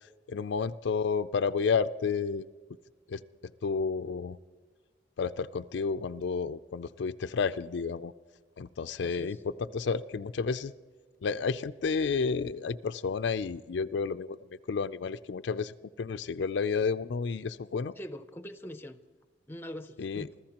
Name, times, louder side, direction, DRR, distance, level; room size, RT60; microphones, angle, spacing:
voice 1, 0.3-2.5 3.1-3.2 3.6-4.4 5.2-8.1 8.6-9.4 9.7-10.7 11.2-14.4 14.7-17.9 20.0-20.3, left 5 dB, 70° left, 12 dB, 0.4 m, -31 dB
voice 2, 9.0-9.4 18.0-19.0 19.5-20.4, equal, 10° left, 10 dB, 0.6 m, -43 dB
26.5 x 14.5 x 2.9 m, 1.4 s
head